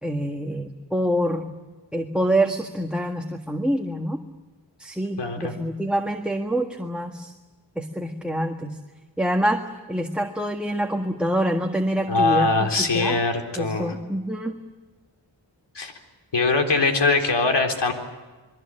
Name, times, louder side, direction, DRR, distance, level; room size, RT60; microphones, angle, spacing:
voice 1, 0.0-1.5 1.9-4.2 4.8-7.3 7.7-8.8 9.2-9.6 9.9-13.2 13.6-14.5, right 1 dB, ahead, 3 dB, 1.7 m, -26 dB
voice 2, 5.2-5.5 12.1-13.9 15.7-15.9 16.3-17.9, left 3 dB, 65° left, 4 dB, 4.0 m, -22 dB
28.0 x 22.0 x 7.8 m, 1.3 s
wide cardioid pair, 95°, 45 cm